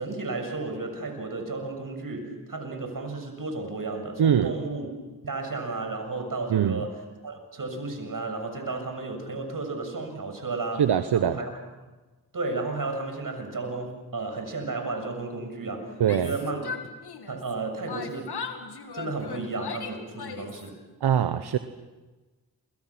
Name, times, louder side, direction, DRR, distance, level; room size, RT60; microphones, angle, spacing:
voice 1, 0.0-4.9 5.2-10.8 11.1-11.5 12.3-16.7 17.3-18.4 18.9-20.8, right 3 dB, 55° right, 5 dB, 7.1 m, -33 dB
voice 2, 4.2-4.5 6.5-6.8 10.8-11.4 16.0-16.3 21.0-21.6, right 9 dB, 80° right, 10 dB, 1.0 m, -22 dB
Yell, 15.9-17.5 17.9-20.7, left 6 dB, 80° left, 2.3 m, -38 dB
29.0 x 24.5 x 6.0 m, 1.2 s
cardioid pair, 40°, 39 cm